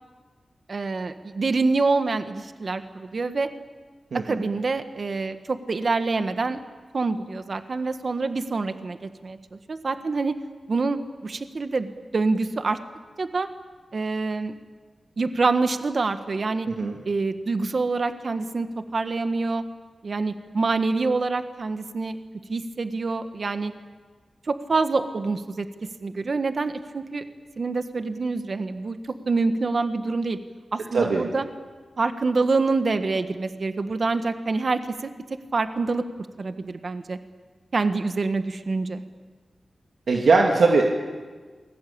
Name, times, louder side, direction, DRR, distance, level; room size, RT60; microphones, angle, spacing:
voice 1, 0.7-3.5 4.2-6.6 6.9-10.3 10.7-12.8 13.2-13.5 13.9-14.5 15.2-16.7 17.0-18.7 18.9-19.6 20.0-22.2 22.5-23.7 24.5-25.7 26.0-27.2 27.6-29.0 29.3-30.4 30.7-31.4 32.0-35.1 35.5-36.0 36.4-37.2 37.7-39.0, right 3 dB, 50° right, 8 dB, 1.4 m, -26 dB
voice 2, 4.1-4.4 16.8-16.9 30.9-31.2 40.1-40.9, right 3 dB, 80° right, 0 dB, 2.7 m, -20 dB
28.5 x 21.5 x 8.7 m, 1.4 s
wide cardioid pair, 125°, 0 cm